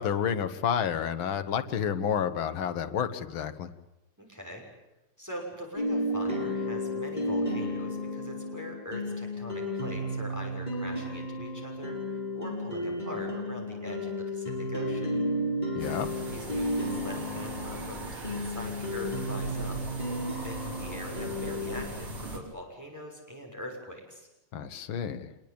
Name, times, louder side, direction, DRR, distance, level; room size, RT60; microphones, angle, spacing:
voice 1, 0.0-3.7 15.8-16.1 24.5-25.3, left 8 dB, 70° left, 8 dB, 2.1 m, -30 dB
voice 2, 4.2-4.6 5.2-15.1 16.3-19.8 20.4-24.3, equal, 5° right, 0 dB, 6.3 m, -42 dB
sound 1, 5.8-21.9, left 1 dB, 20° left, 7.1 m, -33 dB
sound 2, 15.8-22.4, right 1 dB, 75° right, 4.8 m, -40 dB
26.5 x 21.5 x 8.7 m, 0.92 s
omnidirectional pair, 2.3 m